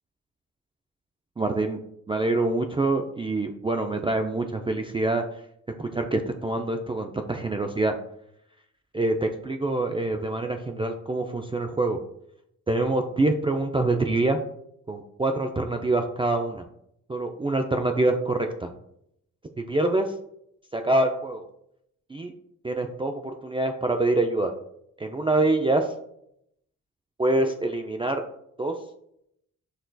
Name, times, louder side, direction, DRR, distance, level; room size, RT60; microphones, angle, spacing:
voice 1, 1.4-1.8 2.1-5.2 5.8-7.9 8.9-12.0 12.7-14.4 14.9-16.6 17.1-18.7 19.7-20.1 20.7-21.4 22.1-22.3 22.6-24.5 25.0-25.9 27.2-28.2 28.6-28.7, right 2 dB, 15° right, 4 dB, 0.3 m, -25 dB
5.9 x 2.7 x 2.2 m, 0.75 s
cardioid pair, 70°, 33 cm